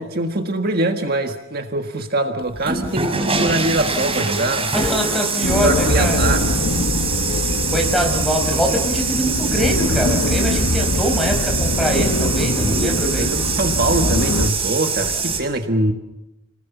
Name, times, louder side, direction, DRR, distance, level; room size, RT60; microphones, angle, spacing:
voice 1, 0.0-4.7 5.6-6.5 12.6-15.9, right 2 dB, 50° right, 6 dB, 1.6 m, -23 dB
sound 1, 2.5-15.4, right 4 dB, 30° right, 5.6 m, -24 dB
voice 2, 4.7-6.2 7.7-13.3, equal, ahead, 2 dB, 5.1 m, -23 dB
sound 2, 5.4-14.5, left 2 dB, 90° left, 1.2 m, -22 dB
30.0 x 20.0 x 7.2 m, 0.92 s
head